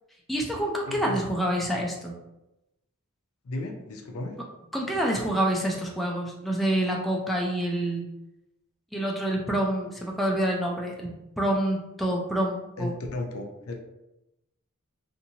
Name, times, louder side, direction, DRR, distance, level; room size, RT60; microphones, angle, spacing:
voice 1, 0.3-2.2 4.7-8.1 8.9-12.9, right 1 dB, ahead, -1 dB, 0.3 m, -27 dB
voice 2, 0.9-1.2 3.4-4.3 12.8-13.7, left 1 dB, 70° left, 3 dB, 0.5 m, -34 dB
2.7 x 2.5 x 2.7 m, 0.93 s
head